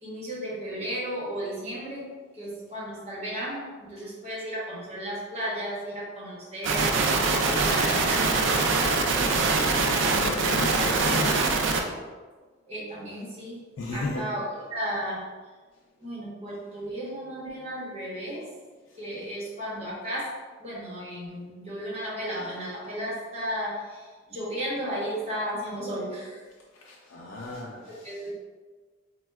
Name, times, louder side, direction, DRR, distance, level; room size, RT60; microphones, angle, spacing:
voice 1, 0.0-8.3 10.0-10.9 12.7-13.6 13.9-15.3 16.0-18.5 19.0-20.3 20.6-26.4 27.9-28.3, equal, 35° right, -7 dB, 1.0 m, -34 dB
sound 1, 6.6-11.8, right 3 dB, 65° right, 0.3 m, -23 dB
voice 2, 9.7-11.4 13.8-14.3 26.7-28.2, left 2 dB, 90° left, -2 dB, 0.4 m, -35 dB
4.2 x 2.2 x 2.2 m, 1.4 s
head